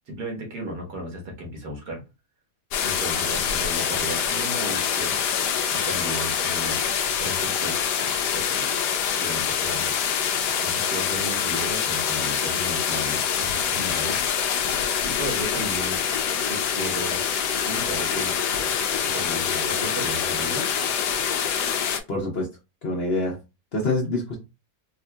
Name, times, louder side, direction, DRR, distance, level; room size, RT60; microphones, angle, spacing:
voice 1, 0.1-2.0 2.8-5.2 5.7-6.8 7.2-8.7 9.2-9.9 10.6-14.2 15.0-16.0 16.5-17.2 17.6-18.4 19.0-20.8, right 1 dB, 75° right, 0 dB, 1.8 m, -35 dB
sound 1, 2.7-22.0, left 7 dB, 85° left, 1.2 m, -25 dB
voice 2, 22.1-22.5 22.8-23.4 23.7-24.4, left 2 dB, 45° left, -2 dB, 1.0 m, -25 dB
4.4 x 2.6 x 2.2 m, 0.26 s
omnidirectional pair, 1.7 m